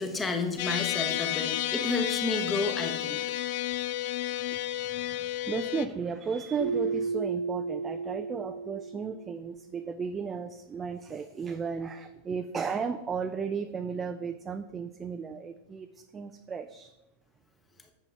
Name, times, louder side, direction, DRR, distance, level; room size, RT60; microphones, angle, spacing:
voice 1, 0.0-3.2, left 3 dB, 15° left, 5 dB, 1.0 m, -31 dB
sound 1, 0.6-5.9, left 13 dB, 50° left, 0.4 m, -31 dB
voice 2, 4.5-16.9, right 6 dB, 20° right, 8 dB, 0.4 m, -35 dB
Keyboard (musical), 6.6-9.4, right 4 dB, 85° right, 1.4 m, -33 dB
8.2 x 6.7 x 3.4 m, 0.97 s
figure-of-eight pair, 90°, 0 cm